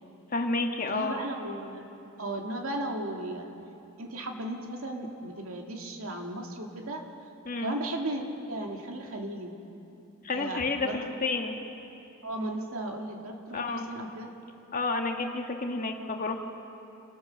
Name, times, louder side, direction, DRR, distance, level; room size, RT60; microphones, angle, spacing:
voice 1, 0.3-1.1 7.4-7.7 10.2-11.6 13.5-13.9 14.7-16.4, left 3 dB, 40° left, 4 dB, 1.5 m, -30 dB
voice 2, 0.9-1.9 2.2-3.5 4.0-7.0 7.6-9.5 10.3-11.0 12.2-14.3, right 1 dB, 80° right, 2 dB, 2.3 m, -35 dB
29.0 x 13.5 x 6.6 m, 2.8 s
head